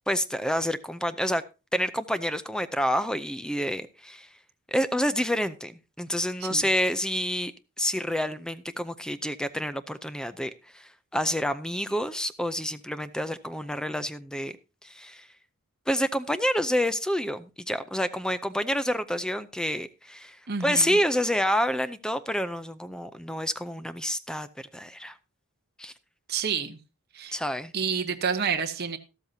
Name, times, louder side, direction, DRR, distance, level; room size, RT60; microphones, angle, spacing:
voice 1, 0.1-1.4 1.7-4.3 4.7-7.5 7.8-14.5 14.8-15.3 15.9-25.1 25.8-25.9 27.3-27.7, equal, 5° left, 0.5 m, -28 dB
voice 2, 20.5-21.0 26.3-26.8 27.1-27.4 27.7-29.0, right 6 dB, 45° right, 0.9 m, -29 dB
13.5 x 13.0 x 2.7 m
head